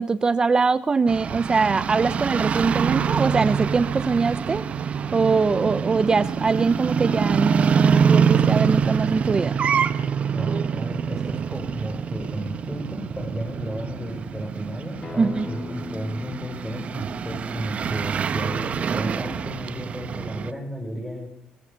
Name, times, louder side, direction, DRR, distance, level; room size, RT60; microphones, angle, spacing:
voice 1, 0.0-4.7 5.1-9.6 15.2-15.5, right 4 dB, 30° right, 15 dB, 0.8 m, -22 dB
sound 1, 1.1-20.5, right 7 dB, 45° right, 1.5 m, -25 dB
voice 2, 10.3-21.3, equal, 5° left, 1 dB, 6.3 m, -33 dB
Acoustic guitar, 15.0-20.2, left 3 dB, 30° left, 2.2 m, -41 dB
22.5 x 18.5 x 6.8 m, 0.71 s
cardioid pair, 100°, 3 cm